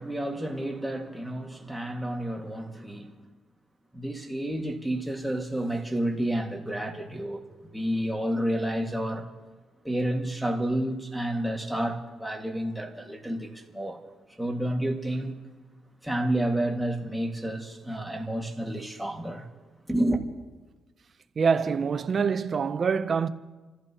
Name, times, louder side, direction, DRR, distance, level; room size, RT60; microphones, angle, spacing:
voice 1, 0.0-3.1 3.9-7.5 7.7-9.3 9.8-14.0 14.4-15.4 16.0-19.5 19.9-20.2, right 1 dB, 5° right, 2.0 m, -30 dB
voice 2, 21.4-23.3, right 6 dB, 45° right, 0.7 m, -25 dB
29.5 x 15.0 x 3.0 m
cardioid pair, 90°, 0 cm